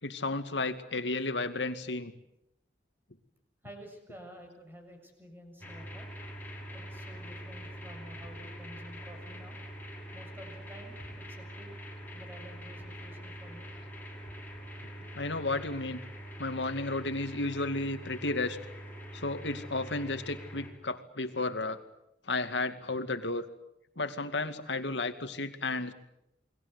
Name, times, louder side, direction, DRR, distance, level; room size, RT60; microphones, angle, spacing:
voice 1, 0.0-2.1 15.1-16.0 16.4-18.6 19.1-21.8 22.3-23.5 24.0-25.9, left 2 dB, 85° left, 8 dB, 2.3 m, -33 dB
voice 2, 3.6-6.1 6.7-9.6 10.1-11.7 12.1-13.7 14.0-14.1, equal, 15° right, 4 dB, 7.2 m, -51 dB
sound 1, 5.6-20.7, equal, 10° left, 6.6 m, -44 dB
29.5 x 21.5 x 8.3 m, 0.81 s
head